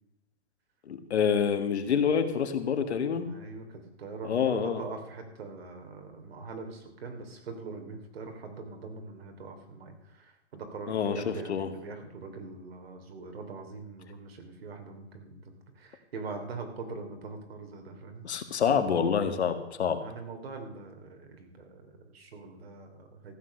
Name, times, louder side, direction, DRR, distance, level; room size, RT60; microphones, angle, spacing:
voice 1, 0.9-3.3 4.2-4.8 10.9-11.7 18.2-20.0, left 7 dB, 75° left, 8 dB, 1.9 m, -27 dB
voice 2, 3.2-15.4 15.7-18.2 19.2-19.3 19.9-23.4, right 4 dB, 60° right, 5 dB, 3.0 m, -42 dB
15.0 x 7.9 x 6.5 m, 1.0 s
hypercardioid pair, 170°, 34 cm